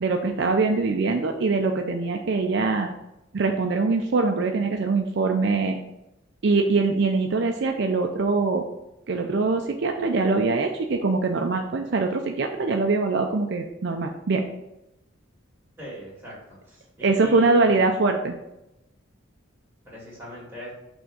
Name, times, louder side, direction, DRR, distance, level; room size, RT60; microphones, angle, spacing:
voice 1, 0.0-2.9 3.3-5.8 6.4-8.7 9.1-14.5 17.0-18.3, right 3 dB, 60° right, 4 dB, 0.5 m, -23 dB
voice 2, 15.8-16.3 16.6-17.8 19.8-20.7, equal, 10° right, -7 dB, 2.4 m, -40 dB
6.0 x 3.5 x 5.4 m, 0.89 s
head